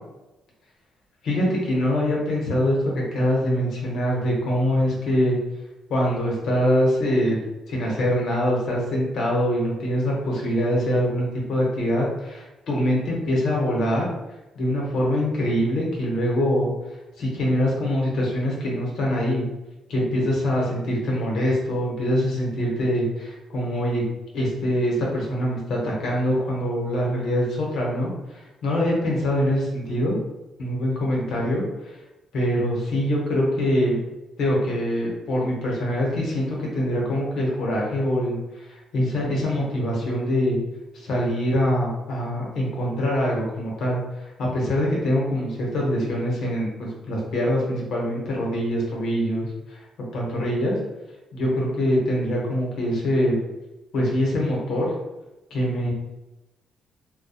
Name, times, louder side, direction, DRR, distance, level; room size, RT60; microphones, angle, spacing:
voice 1, 1.2-5.4 5.9-7.4 7.7-14.1 14.5-16.7 17.2-19.5 19.9-24.0 24.3-30.2 30.6-31.9 32.3-34.0 34.4-40.6 40.9-49.8 50.1-50.8 51.3-53.4 53.9-54.9 55.5-55.9, equal, 70° left, -3 dB, 0.8 m, -24 dB
2.7 x 2.1 x 2.3 m, 1.0 s
cardioid pair, 90°, 0 cm